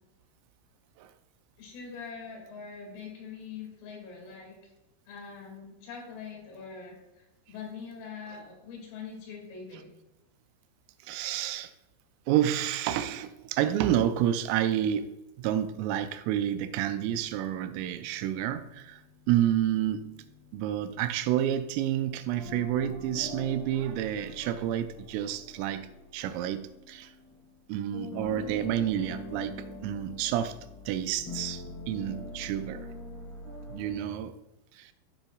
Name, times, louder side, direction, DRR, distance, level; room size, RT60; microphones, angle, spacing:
voice 1, 1.6-4.6 5.1-9.9, left 5 dB, 80° left, 5.0 m, -43 dB
voice 2, 11.0-11.7 12.3-19.0 19.3-20.2 20.5-27.1 27.7-30.6 30.9-32.9 33.7-34.4 34.7-34.9, right 11 dB, 85° right, 3.1 m, -29 dB
sound 1, 17.0-24.8, left 6 dB, 30° right, 2.4 m, -59 dB
sound 2, 22.4-27.6 27.9-34.2, left 2 dB, 40° left, 2.7 m, -43 dB
15.5 x 7.2 x 2.4 m
omnidirectional pair, 5.8 m